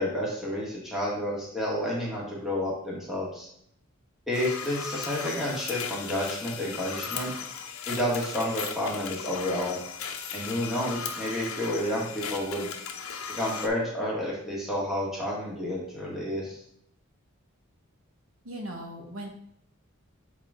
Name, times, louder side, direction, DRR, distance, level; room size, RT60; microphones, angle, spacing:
voice 1, 0.0-3.5 4.3-7.3 7.9-9.8 10.3-12.7 13.4-16.6, left 1 dB, ahead, -6 dB, 1.9 m, -30 dB
sound 1, 4.3-13.7, left 6 dB, 75° left, 0.8 m, -37 dB
voice 2, 18.4-19.3, right 1 dB, 70° right, 0 dB, 1.3 m, -38 dB
7.2 x 4.1 x 3.7 m, 0.68 s
head